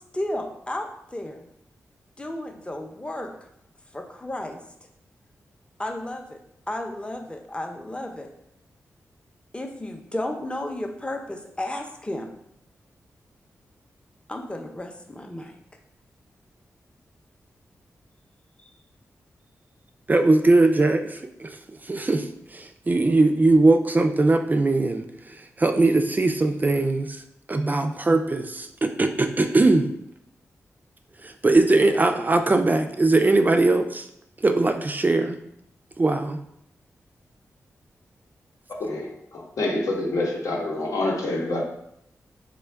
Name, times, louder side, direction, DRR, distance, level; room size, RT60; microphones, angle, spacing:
voice 1, 0.1-1.5 2.2-3.3 3.9-4.6 5.8-6.4 6.7-8.3 9.5-12.3 14.3-15.5, left 1 dB, 20° left, 3 dB, 0.6 m, -33 dB
voice 2, 20.1-21.6 21.8-27.2 27.5-29.9 31.2-34.1 34.4-35.4 36.0-36.4, right 2 dB, 30° right, 7 dB, 0.3 m, -20 dB
voice 3, 38.8-41.6, left 2 dB, 75° left, -1 dB, 0.8 m, -27 dB
3.5 x 2.2 x 3.4 m, 0.75 s
cardioid pair, 45°, 6 cm